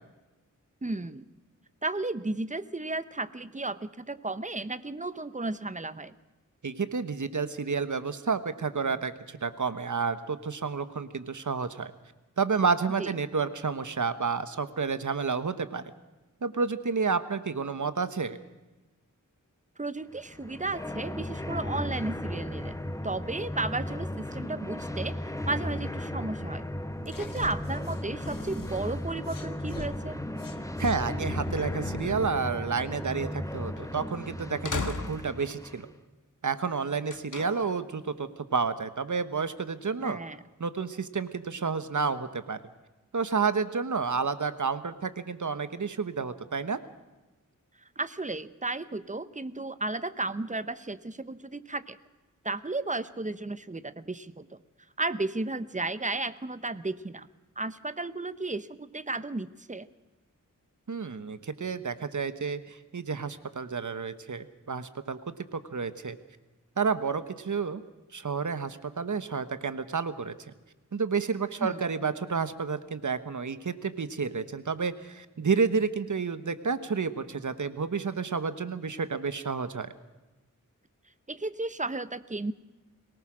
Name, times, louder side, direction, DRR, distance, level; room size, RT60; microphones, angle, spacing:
voice 1, 0.8-1.3 1.8-6.1 13.0-13.1 19.8-22.8 23.0-25.2 25.4-26.7 27.1-30.2 40.0-40.4 48.0-52.0 52.4-54.6 55.0-57.3 57.6-59.9 71.6-71.8 81.3-82.5, right 2 dB, 25° right, 13 dB, 0.9 m, -34 dB
voice 2, 6.6-11.9 12.4-15.8 16.4-18.4 30.8-35.9 36.4-40.2 40.6-42.6 43.1-46.8 60.9-66.2 66.8-67.8 68.1-70.3 70.9-79.9, right 5 dB, 65° right, 12 dB, 1.2 m, -30 dB
sound 1, 20.1-35.9, left 1 dB, 10° left, 1.3 m, -35 dB
sound 2, 27.1-29.9 30.4-32.5, left 4 dB, 90° left, 1.6 m, -42 dB
sound 3, 33.8-33.9 34.7-35.6 37.1-37.8, left 4 dB, 70° left, 1.8 m, -35 dB
22.0 x 19.0 x 6.3 m, 1.1 s
wide cardioid pair, 80°, 32 cm